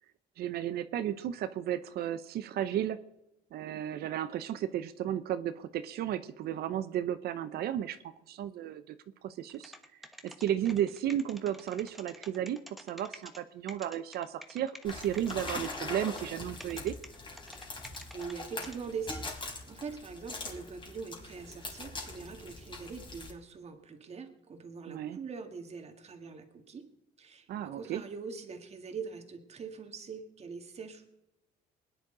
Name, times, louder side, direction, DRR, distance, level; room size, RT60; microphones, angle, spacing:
voice 1, 0.4-3.0 3.5-8.0 8.3-9.0 9.2-9.7 10.2-17.0 24.9-25.2 27.5-28.0, right 11 dB, 70° right, 12 dB, 0.7 m, -34 dB
sound 1, 9.5-13.4 13.7-15.8 16.2-16.3 16.6-18.3 18.6-18.8, equal, ahead, 1.2 m, -48 dB
sound 2, 14.8-23.3, left 2 dB, 30° left, 3.7 m, -42 dB
voice 2, 18.1-26.9 27.2-31.1, right 5 dB, 40° right, 6 dB, 1.9 m, -43 dB
21.0 x 10.0 x 3.9 m, 0.91 s
cardioid pair, 110°, 17 cm